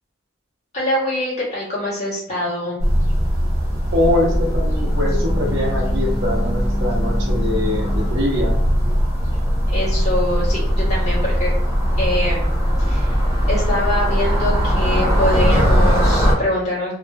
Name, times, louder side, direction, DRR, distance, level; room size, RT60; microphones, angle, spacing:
voice 1, 0.7-2.8 9.7-11.5 12.0-12.5 12.8-13.1 13.5-16.9, left 1 dB, 35° left, -7 dB, 1.4 m, -24 dB
sound 1, 2.8-16.3, equal, 15° right, 0.9 m, -19 dB
voice 2, 3.9-8.6, left 1 dB, 85° right, -3 dB, 0.7 m, -23 dB
3.0 x 2.4 x 2.2 m, 0.68 s
head